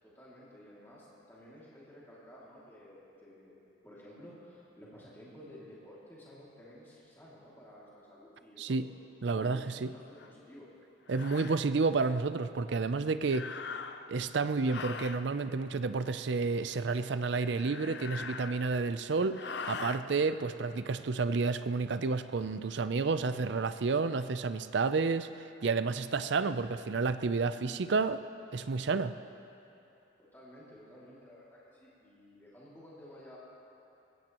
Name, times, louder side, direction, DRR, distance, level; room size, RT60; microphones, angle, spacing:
voice 1, 0.0-3.6 3.8-8.8 9.3-10.7 30.2-33.4, equal, 10° left, -8 dB, 2.5 m, -53 dB
voice 2, 9.2-9.9 11.1-13.5 14.1-19.4 19.7-28.2 28.5-29.1, right 4 dB, 65° right, 12 dB, 0.5 m, -30 dB
sound 1, 10.2-10.3 11.1-11.6 13.2-14.2 14.6-15.3 17.4-18.9 19.3-20.0, left 5 dB, 60° left, 0.6 m, -41 dB
21.0 x 16.5 x 3.0 m, 2.8 s
head